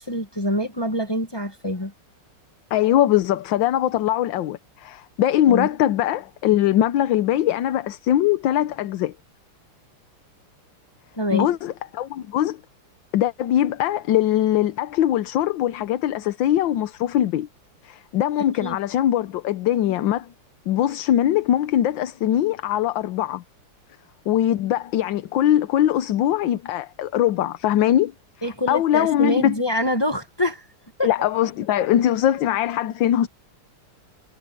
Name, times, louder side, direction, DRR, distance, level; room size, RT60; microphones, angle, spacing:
voice 1, 0.0-1.9 5.5-5.7 11.1-11.5 18.6-18.8 28.4-30.7 31.0-31.1, equal, 20° left, 0.7 m, -25 dB
voice 2, 2.7-9.1 11.3-12.6 13.1-17.5 17.8-20.3 20.7-23.4 24.3-28.1 28.7-29.5 31.0-33.3, left 12 dB, 70° left, 1.4 m, -21 dB
omnidirectional pair, 2.3 m